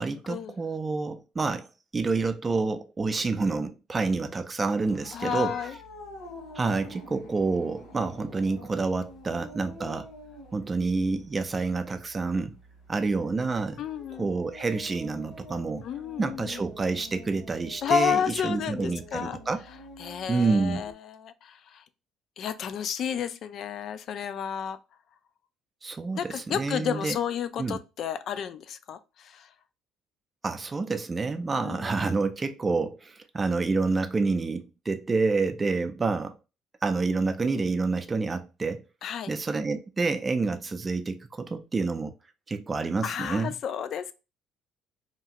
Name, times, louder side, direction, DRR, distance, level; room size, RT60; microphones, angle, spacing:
voice 1, 0.0-1.7 1.9-5.6 6.5-10.1 10.5-12.6 12.9-13.8 14.2-15.9 16.2-19.6 20.3-20.8 25.8-27.2 27.6-27.8 30.4-36.4 36.8-38.8 39.3-42.1 42.5-43.5, right 3 dB, 30° right, 0.4 m, -28 dB
sound 1, 4.8-20.9, left 1 dB, 75° left, 1.4 m, -47 dB
voice 2, 5.1-5.8 13.8-14.3 15.8-16.6 17.8-19.4 20.0-21.8 22.4-24.8 26.2-29.5 31.5-31.9 39.0-39.3 43.0-44.1, left 8 dB, 60° left, 0.3 m, -31 dB
2.9 x 2.3 x 2.7 m
supercardioid pair, 70°, 0 cm